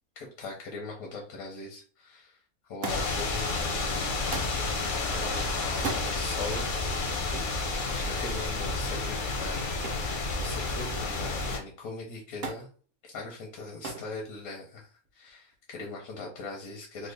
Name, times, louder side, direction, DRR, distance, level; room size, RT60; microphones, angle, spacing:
voice 1, 0.2-2.4 2.7-6.7 7.9-12.7 13.0-17.1, left 3 dB, 85° left, 1 dB, 1.2 m, -41 dB
Thump thud, 2.8-3.3 4.3-4.6 5.7-6.1 7.3-7.6 9.8-10.1 10.5-11.1 12.4-12.7 13.8-14.1 15.0-15.5 16.5-16.6, right 4 dB, 55° right, 0.7 m, -37 dB
sound 1, 2.9-11.6, left 3 dB, 55° left, 0.5 m, -30 dB
3.1 x 2.2 x 3.3 m, 0.39 s
omnidirectional pair, 1.5 m